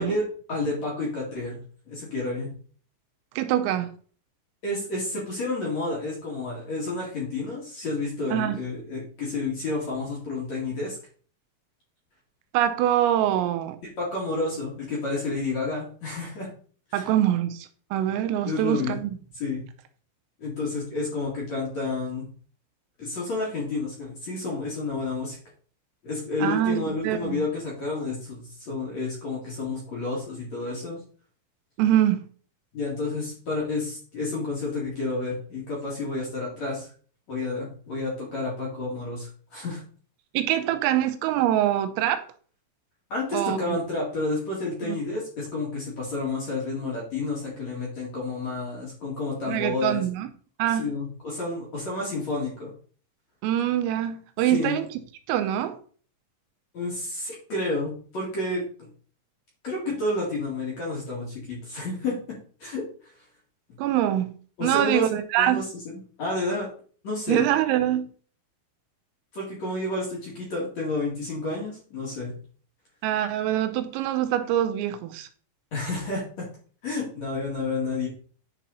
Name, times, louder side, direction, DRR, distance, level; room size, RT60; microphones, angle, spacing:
voice 1, 0.0-1.6 1.9-2.5 4.6-11.0 14.0-16.5 16.9-17.1 18.4-19.0 19.3-19.6 20.4-22.3 23.0-25.4 26.0-31.0 32.7-36.9 37.3-39.8 43.1-50.0 50.7-52.7 54.5-54.8 56.7-58.6 59.6-62.2 62.6-62.8 64.6-65.1 65.4-66.7 67.0-67.4 69.3-72.3 75.7-76.5 76.8-78.1, left 3 dB, 45° left, 2.4 m, -30 dB
voice 2, 3.4-3.9 8.3-8.6 12.5-13.8 16.9-19.2 26.4-27.4 31.8-32.2 40.3-42.2 43.3-43.8 44.8-45.0 49.5-50.3 50.6-50.9 53.4-54.9 55.3-55.8 63.8-64.3 64.6-65.6 67.3-68.1 73.0-75.3, right 11 dB, 90° right, 3.3 m, -24 dB
10.5 x 4.3 x 4.1 m
omnidirectional pair, 6.0 m